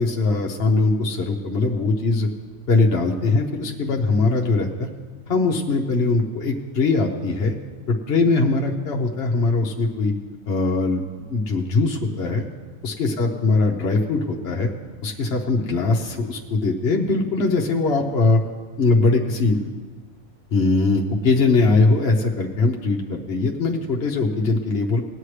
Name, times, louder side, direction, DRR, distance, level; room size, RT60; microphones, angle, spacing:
voice 1, 0.0-2.3 2.7-4.9 5.3-7.5 7.9-10.1 10.5-11.0 11.3-12.4 12.8-14.7 15.0-18.4 18.8-19.7 20.5-25.0, left 3 dB, 50° left, 0 dB, 1.1 m, -21 dB
19.0 x 9.1 x 3.3 m, 1.4 s
omnidirectional pair, 1.5 m